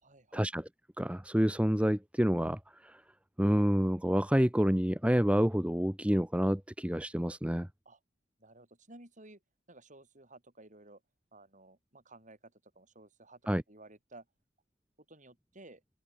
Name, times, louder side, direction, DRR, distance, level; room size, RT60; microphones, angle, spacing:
voice 1, 0.0-0.5 7.8-8.0 8.4-9.4 9.7-11.0 11.3-13.4 13.7-14.2 15.1-15.8, right 2 dB, 40° right, 7.9 m, -55 dB
voice 2, 1.0-3.0 3.4-7.7 13.5-13.6, equal, 5° right, 1.2 m, -28 dB
head